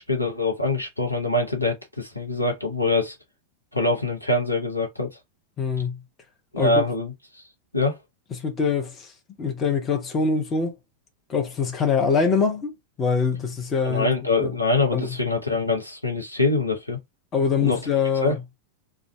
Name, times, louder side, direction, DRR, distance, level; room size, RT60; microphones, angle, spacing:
voice 1, 0.0-3.2 3.7-5.1 6.5-7.1 7.7-8.0 13.8-17.0 17.6-17.8 18.2-18.4, left 2 dB, 85° left, 0.9 m, -24 dB
voice 2, 5.6-6.0 6.6-6.8 8.3-9.1 9.4-10.8 11.3-14.1 14.4-14.5 14.9-15.2 17.3-18.4, left 5 dB, 25° left, 0.8 m, -24 dB
2.5 x 2.4 x 3.2 m
figure-of-eight pair, 90°, 0 cm